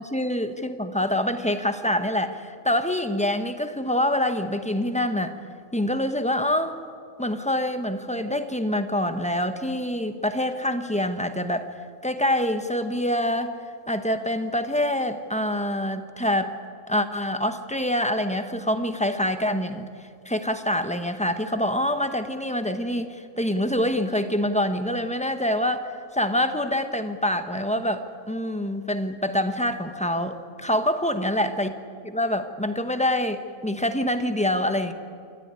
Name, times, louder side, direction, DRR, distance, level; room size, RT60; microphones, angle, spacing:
voice 1, 0.0-5.4 5.7-6.8 7.2-11.7 12.0-13.5 13.9-16.5 16.9-19.9 20.2-31.7 32.0-34.9, left 1 dB, 5° left, 8 dB, 0.9 m, -25 dB
28.0 x 13.5 x 9.8 m, 2.3 s
omnidirectional pair, 1.5 m